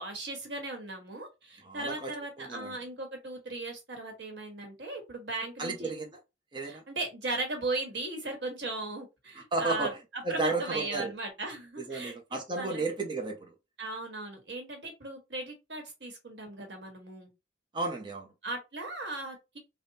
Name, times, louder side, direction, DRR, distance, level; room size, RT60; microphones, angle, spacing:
voice 1, 0.0-5.9 6.7-9.9 10.3-12.8 13.8-17.3 18.4-19.6, right 2 dB, 85° right, 1.5 m, -37 dB
voice 2, 1.6-2.1 2.4-2.8 5.6-6.2 6.5-6.8 9.5-10.0 10.2-11.1 11.8-13.5 17.7-18.3, right 3 dB, 25° right, 0.7 m, -33 dB
3.5 x 2.2 x 4.1 m
head